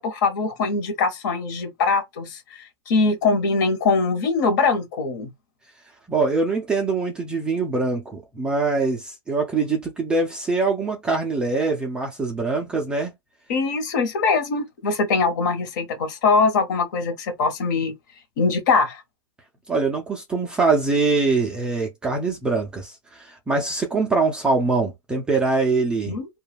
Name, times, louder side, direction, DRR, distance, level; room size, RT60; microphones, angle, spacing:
voice 1, 0.0-5.3 13.5-17.9 18.4-19.0 26.1-26.3, left 4 dB, 45° left, 1.0 m, -22 dB
voice 2, 6.1-13.1 19.7-26.1, right 3 dB, 5° right, 0.4 m, -23 dB
2.3 x 2.2 x 3.2 m
hypercardioid pair, 155°, 14 cm